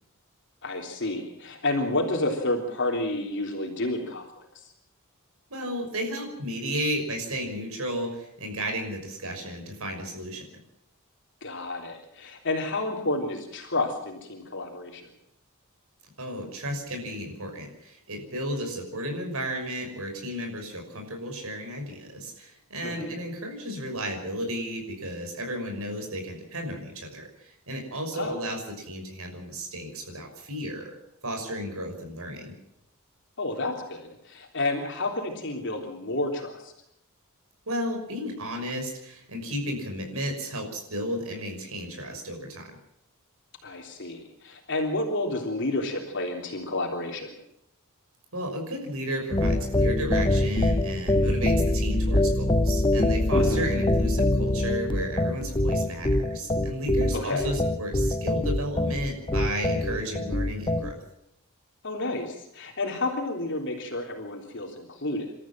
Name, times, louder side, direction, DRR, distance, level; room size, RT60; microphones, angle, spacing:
voice 1, 0.6-4.7 11.4-15.1 22.8-23.2 28.1-28.4 33.4-36.7 43.6-47.4 53.3-53.7 57.1-57.5 61.8-65.3, left 2 dB, 60° left, 1 dB, 3.5 m, -30 dB
voice 2, 5.5-10.4 16.2-30.9 31.2-32.5 37.7-42.7 48.3-60.9, equal, 90° right, 2 dB, 6.1 m, -33 dB
sound 1, 49.3-60.9, left 1 dB, 25° left, 1.0 m, -24 dB
29.0 x 13.5 x 7.5 m, 0.80 s
head